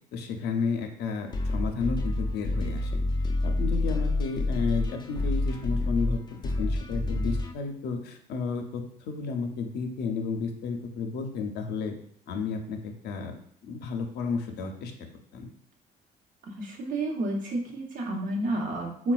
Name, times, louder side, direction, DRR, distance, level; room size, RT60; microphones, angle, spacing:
voice 1, 0.1-3.0 3.4-8.8 9.1-11.9 12.3-13.3 13.6-14.9 15.3-15.4, left 5 dB, 80° left, 4 dB, 0.5 m, -32 dB
sound 1, 1.3-7.5, left 2 dB, 25° left, 0.3 m, -28 dB
voice 2, 16.6-19.1, right 1 dB, 50° right, -1 dB, 0.8 m, -30 dB
3.9 x 2.2 x 2.3 m, 0.63 s
cardioid pair, 110°, 17 cm